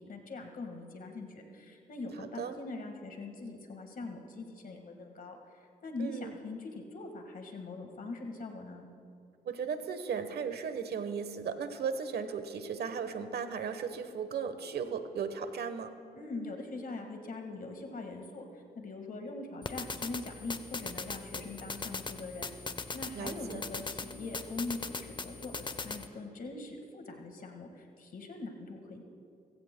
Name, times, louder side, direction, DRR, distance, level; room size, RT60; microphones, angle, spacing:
voice 1, 0.1-8.9 16.1-22.5 22.9-29.0, left 3 dB, 55° left, 4 dB, 1.7 m, -42 dB
voice 2, 2.2-2.6 6.0-6.4 9.4-16.0 23.1-23.7, right 6 dB, 75° right, 9 dB, 1.1 m, -36 dB
sound 1, 19.6-26.1, left 3 dB, 30° left, 0.8 m, -40 dB
23.5 x 16.0 x 2.2 m, 2.4 s
cardioid pair, 70°, 17 cm